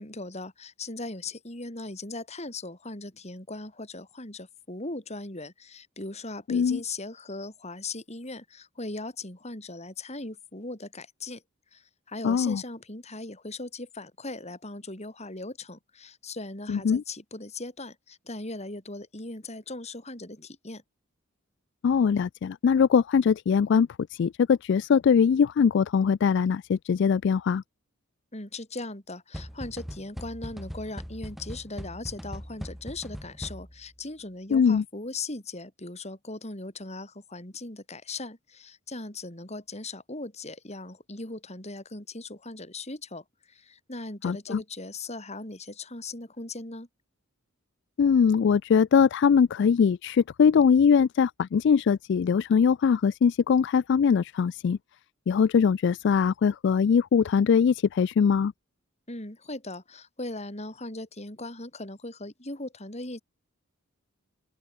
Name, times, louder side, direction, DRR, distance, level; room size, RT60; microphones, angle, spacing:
voice 1, 0.0-11.4 11.7-20.8 28.3-46.9 59.1-63.2, left 2 dB, 30° left, 4.8 m, -39 dB
voice 2, 6.5-6.8 12.2-12.6 16.7-17.0 21.8-27.6 34.5-34.8 44.2-44.6 48.0-54.8 55.3-58.5, left 6 dB, 55° left, 0.3 m, -22 dB
sound 1, 29.3-33.9, equal, ahead, 1.9 m, -40 dB
open air
head